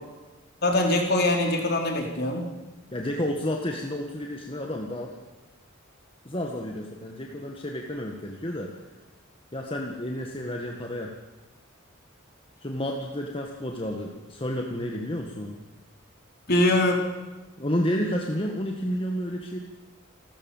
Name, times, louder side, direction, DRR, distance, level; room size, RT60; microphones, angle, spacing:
voice 1, 0.6-2.5 16.5-17.1, left 1 dB, 50° left, 2 dB, 4.5 m, -23 dB
voice 2, 2.9-5.2 6.3-8.7 9.5-11.1 12.6-15.6 17.6-19.6, equal, 25° left, 1 dB, 1.7 m, -31 dB
29.0 x 14.0 x 7.3 m, 1.2 s
head